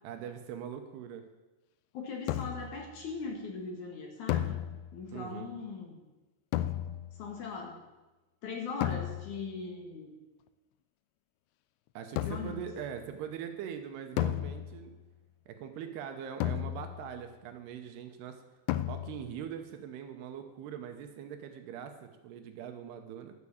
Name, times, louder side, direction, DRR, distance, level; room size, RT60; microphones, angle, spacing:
voice 1, 0.0-1.3 5.1-5.5 11.9-14.9 15.5-18.4 18.9-23.3, right 8 dB, 75° right, 6 dB, 2.8 m, -42 dB
voice 2, 1.9-4.6 4.9-6.0 7.2-7.8 8.4-10.2 12.2-12.7, left 4 dB, 55° left, 1 dB, 2.4 m, -40 dB
sound 1, 2.3-2.8 4.3-5.2 6.5-7.3 8.8-9.5 12.2-12.7 14.2-15.0 16.4-17.2 18.7-19.4, left 12 dB, 85° left, 2.8 m, -34 dB
11.5 x 6.7 x 8.5 m, 1.1 s
omnidirectional pair, 5.0 m